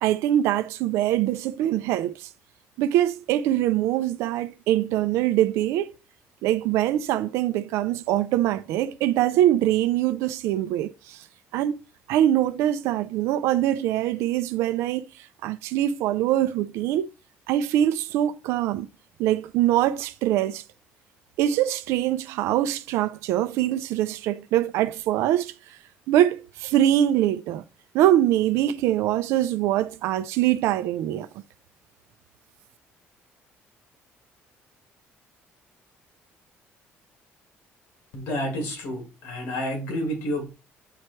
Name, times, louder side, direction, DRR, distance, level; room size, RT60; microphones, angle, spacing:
voice 1, 0.0-2.3 2.8-5.9 6.4-11.2 11.5-11.8 12.1-17.1 17.5-18.9 19.2-20.6 21.4-25.5 26.1-27.6 27.9-31.3, right 12 dB, 90° right, 0.5 m, -23 dB
voice 2, 38.1-40.5, equal, 80° left, 2.8 m, -30 dB
8.6 x 3.2 x 4.4 m
cardioid pair, 150°, 5 cm